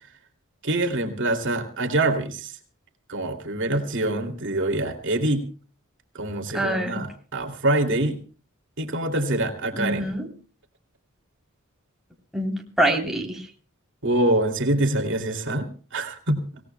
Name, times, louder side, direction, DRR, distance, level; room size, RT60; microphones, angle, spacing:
voice 1, 0.6-2.5 3.1-5.4 6.1-8.2 8.8-10.1 14.0-15.7 15.9-16.4, right 1 dB, 60° right, 4 dB, 2.6 m, -25 dB
voice 2, 6.5-7.0 9.7-10.3 12.3-13.5, right 1 dB, ahead, 0 dB, 3.3 m, -25 dB
26.5 x 17.5 x 2.2 m, 0.38 s
head